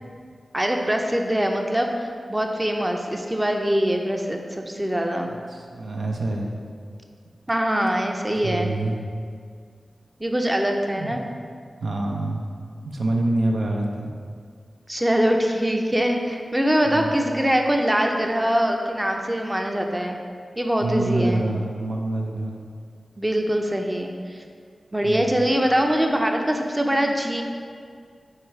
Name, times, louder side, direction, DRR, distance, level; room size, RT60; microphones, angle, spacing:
voice 1, 0.5-5.3 7.5-8.7 10.2-11.2 14.9-20.2 20.6-21.4 23.2-24.4 24.9-27.4, equal, 15° right, 3 dB, 0.5 m, -23 dB
voice 2, 5.2-6.7 8.4-9.0 11.0-11.1 11.8-12.5 12.8-14.1 16.9-17.1 20.8-22.6 25.0-25.5, right 2 dB, 85° right, 0 dB, 0.6 m, -26 dB
4.8 x 4.3 x 4.7 m, 2.1 s
cardioid pair, 55°, 0 cm